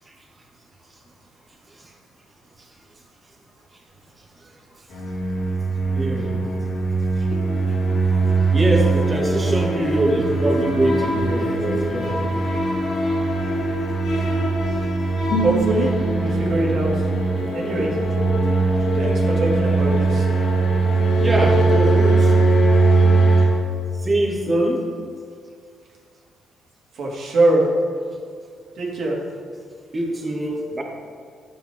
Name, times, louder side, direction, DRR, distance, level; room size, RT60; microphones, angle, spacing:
sound 1, 4.9-23.5, right 3 dB, 75° left, 2.8 m, -20 dB
voice 1, 5.9-6.4 8.5-12.5 21.2-22.5 24.0-24.9 29.9-30.8, right 1 dB, 30° right, -1 dB, 2.1 m, -23 dB
voice 2, 15.4-17.1 17.5-18.0 18.9-20.3 26.9-27.7 28.8-29.2, right 2 dB, 70° right, -3 dB, 2.5 m, -22 dB
11.5 x 8.9 x 3.8 m, 2.2 s
cardioid pair, 90°, 0 cm